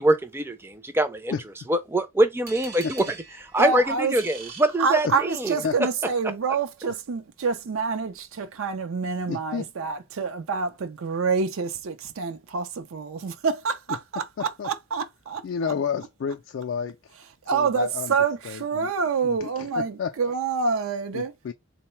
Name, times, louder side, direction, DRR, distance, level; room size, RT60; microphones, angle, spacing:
voice 1, 0.0-1.3 1.7-3.0 3.5-5.1, right 1 dB, 10° right, 0.4 m, -23 dB
sound 1, 2.5-5.5, right 4 dB, 45° right, 0.7 m, -43 dB
voice 2, 3.6-4.2 4.8-15.7 17.4-21.3, right 5 dB, 75° right, 0.5 m, -27 dB
voice 3, 9.3-9.7 14.4-14.7 15.4-17.2 17.5-18.1 18.5-18.9 19.2-20.1 21.1-21.5, left 6 dB, 60° left, 0.3 m, -31 dB
3.8 x 2.1 x 4.2 m
head